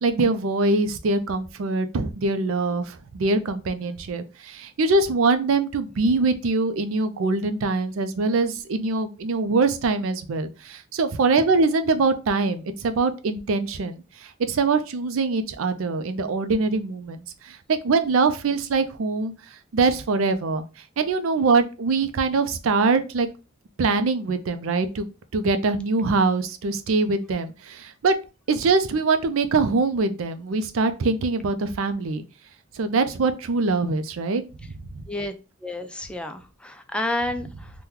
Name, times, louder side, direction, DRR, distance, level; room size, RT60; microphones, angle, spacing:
voice 1, 0.0-19.3 19.7-20.7 21.0-23.3 23.8-25.1 25.3-28.1 28.5-32.2 32.7-34.7, right 3 dB, 85° right, 10 dB, 0.4 m, -23 dB
voice 2, 35.6-37.7, left 1 dB, 5° left, 6 dB, 0.3 m, -30 dB
2.9 x 2.2 x 3.6 m, 0.31 s
head